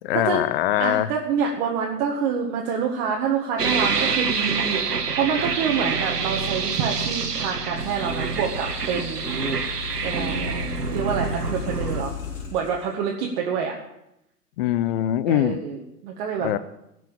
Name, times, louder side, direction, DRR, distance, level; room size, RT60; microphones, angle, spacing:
voice 1, 0.0-1.1 14.6-15.6 16.4-16.6, left 13 dB, 40° left, 16 dB, 0.6 m, -22 dB
voice 2, 0.8-9.3 10.0-10.3 10.9-12.2 12.5-13.7 15.3-16.6, right 6 dB, 40° right, 0 dB, 1.8 m, -27 dB
sound 1, 3.6-12.0, right 5 dB, 80° right, 1.5 m, -26 dB
sound 2, 7.8-12.8, left 6 dB, 65° left, 2.8 m, -35 dB
16.5 x 6.2 x 7.3 m, 0.86 s
figure-of-eight pair, 105°, 46 cm